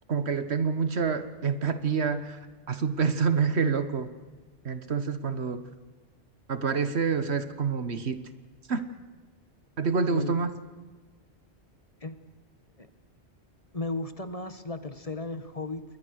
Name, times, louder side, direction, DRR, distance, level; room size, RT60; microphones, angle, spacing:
voice 1, 0.1-2.4 2.7-4.1 4.6-5.6 6.5-8.2 8.7-8.8 9.8-10.5, right 5 dB, 70° right, 11 dB, 1.6 m, -27 dB
voice 2, 13.7-15.8, left 3 dB, 35° left, 11 dB, 1.4 m, -35 dB
28.0 x 22.0 x 6.5 m, 1.3 s
omnidirectional pair, 1.1 m